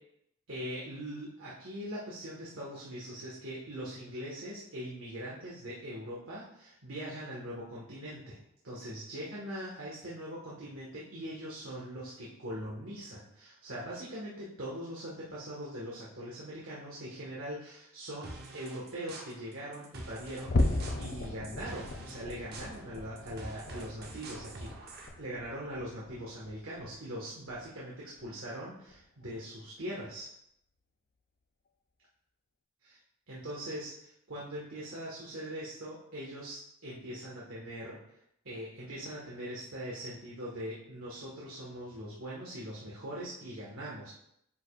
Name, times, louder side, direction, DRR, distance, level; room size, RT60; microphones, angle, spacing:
voice 1, 0.5-8.4 8.6-24.7 25.2-30.3 32.8-33.0 33.3-38.0 38.4-44.1, equal, 75° right, -6 dB, 1.7 m, -41 dB
sound 1, 18.2-25.1, right 2 dB, 50° right, 1.0 m, -47 dB
sound 2, 20.4-27.1 27.5-27.8 28.2-28.3 28.9-29.0, left 2 dB, 45° left, 0.5 m, -36 dB
9.3 x 5.1 x 2.5 m, 0.75 s
head